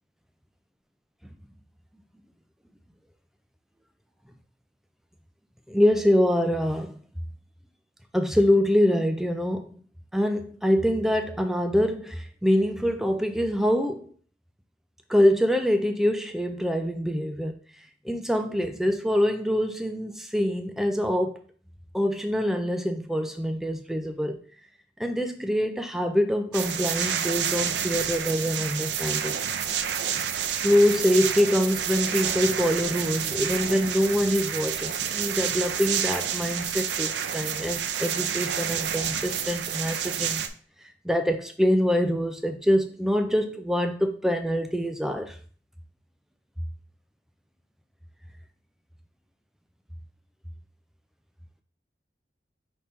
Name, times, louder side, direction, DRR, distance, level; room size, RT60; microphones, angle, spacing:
voice 1, 5.7-7.0 8.1-9.8 10.1-14.1 15.1-17.6 18.0-21.4 21.9-24.4 25.0-29.4 30.6-40.4 41.0-45.4, equal, ahead, 0.4 m, -25 dB
sound 1, 26.5-40.5, right 8 dB, 75° right, 0.4 m, -29 dB
5.2 x 2.9 x 3.5 m
head